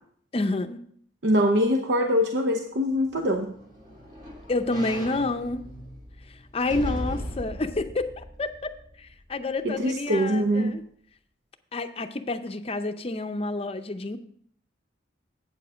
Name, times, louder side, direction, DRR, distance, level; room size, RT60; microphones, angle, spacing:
voice 1, 0.3-0.8 4.5-5.6 6.3-8.7 9.0-10.8 11.7-14.2, left 2 dB, 30° left, 9 dB, 0.6 m, -29 dB
voice 2, 1.2-3.5 9.6-10.7, equal, 65° right, 4 dB, 0.8 m, -23 dB
sound 1, 3.0-9.3 9.8-9.9, equal, 45° right, 2.1 m, -38 dB
8.4 x 7.2 x 4.9 m, 0.64 s
head